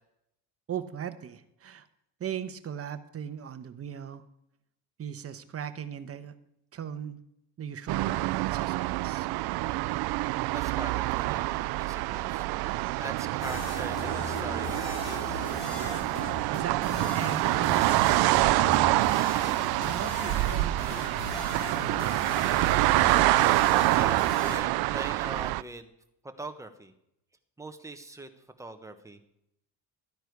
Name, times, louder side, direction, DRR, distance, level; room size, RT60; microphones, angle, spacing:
voice 1, 0.7-1.9 2.2-4.2 5.0-6.4 6.7-7.2 7.6-8.2 8.5-9.3 16.5-19.0 19.8-21.2 21.5-22.6, right 8 dB, 35° right, 11 dB, 1.0 m, -39 dB
sound 1, 7.9-25.6, right 19 dB, 70° right, 0.5 m, -26 dB
voice 2, 10.5-12.5 13.0-14.8 15.0-15.5 23.9-25.9 26.2-26.9 27.6-28.3 28.6-29.2, right 2 dB, 10° right, 6 dB, 1.2 m, -41 dB
sound 2, 13.4-24.6, left 5 dB, 75° left, 3.4 m, -39 dB
13.5 x 10.0 x 4.8 m, 0.79 s
cardioid pair, 120°, 39 cm